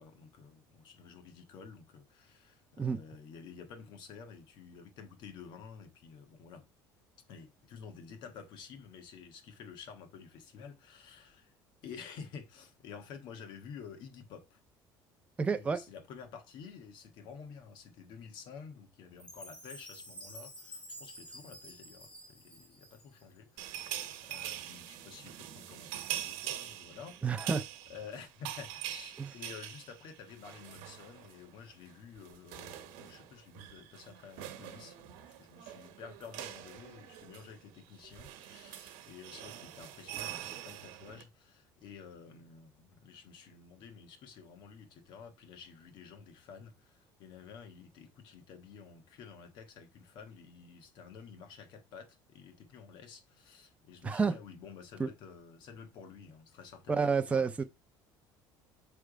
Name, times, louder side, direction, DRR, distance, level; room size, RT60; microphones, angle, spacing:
voice 1, 0.0-6.7 7.3-11.6 11.8-14.6 15.5-27.2 27.9-57.6, left 6 dB, 60° left, 1.3 m, -51 dB
voice 2, 15.4-15.8 27.2-27.6 29.2-29.3 54.0-54.3 55.0-55.1 56.9-57.6, right 5 dB, 15° right, 0.5 m, -29 dB
Chime, 19.2-23.4, equal, 10° left, 2.5 m, -50 dB
sound 1, 23.6-31.5 31.7-41.2, right 12 dB, 90° right, 0.9 m, -44 dB
7.7 x 3.4 x 5.0 m
cardioid pair, 135°, 9 cm